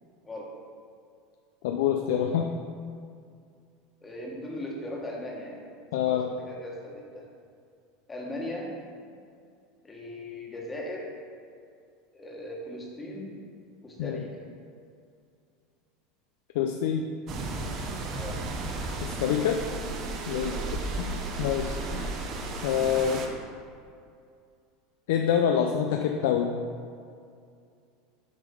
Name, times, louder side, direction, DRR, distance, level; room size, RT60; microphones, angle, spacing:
voice 1, 1.6-2.5 5.9-6.3 14.0-14.2 16.5-17.0 19.0-19.6 20.3-20.5 21.0-22.1 22.6-23.2 25.1-26.5, left 8 dB, 80° left, 3 dB, 0.4 m, -26 dB
voice 2, 4.0-5.6 6.0-7.2 8.1-8.7 9.8-11.0 12.1-13.3 13.8-14.3 18.1-18.4 20.3-20.7, left 1 dB, 15° left, -2 dB, 1.4 m, -38 dB
sound 1, 17.3-23.3, right 2 dB, 45° right, 0.8 m, -34 dB
7.8 x 3.7 x 5.3 m, 2.3 s
supercardioid pair, 125°, 0 cm